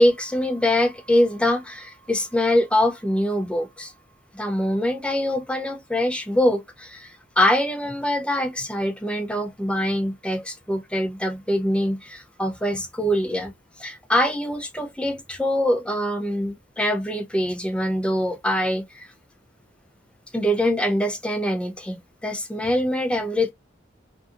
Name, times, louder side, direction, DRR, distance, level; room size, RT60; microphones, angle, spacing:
voice 1, 0.0-3.9 4.3-19.1 20.3-23.5, left 1 dB, 5° left, 0.4 m, -24 dB
2.6 x 2.4 x 2.4 m
head